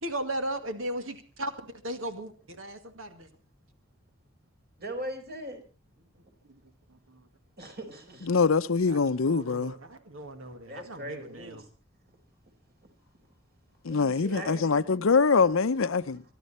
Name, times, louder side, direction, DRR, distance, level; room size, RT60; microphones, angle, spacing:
voice 1, 0.0-1.5 1.8-3.3 6.5-6.6 7.1-7.3 8.9-11.6, right 1 dB, 80° right, 2.1 m, -37 dB
voice 2, 4.8-5.6 7.6-8.3 10.7-11.7 12.1-12.2 13.9-14.8 16.1-16.2, right 1 dB, 50° right, 4.9 m, -40 dB
voice 3, 8.3-9.7 13.8-16.2, left 4 dB, 80° left, 0.7 m, -24 dB
24.5 x 12.0 x 4.4 m
head